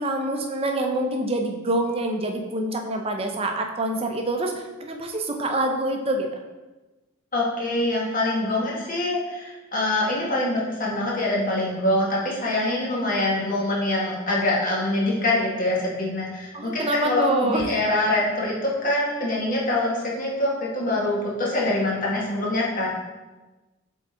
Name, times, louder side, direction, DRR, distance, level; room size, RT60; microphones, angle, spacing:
voice 1, 0.0-6.3 16.5-17.6, right 1 dB, 30° right, 3 dB, 0.6 m, -26 dB
voice 2, 7.3-22.9, left 1 dB, 45° left, -4 dB, 1.5 m, -24 dB
7.1 x 3.8 x 3.7 m, 1.2 s
head